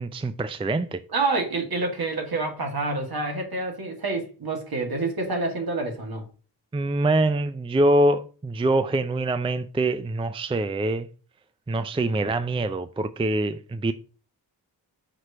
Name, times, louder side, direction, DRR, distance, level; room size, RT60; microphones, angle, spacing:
voice 1, 0.0-1.0 6.7-11.1 11.7-13.9, right 2 dB, 15° right, 0.4 m, -24 dB
voice 2, 1.1-6.3, right 3 dB, 60° right, 2.0 m, -28 dB
6.1 x 3.2 x 5.4 m
cardioid pair, 65°, 41 cm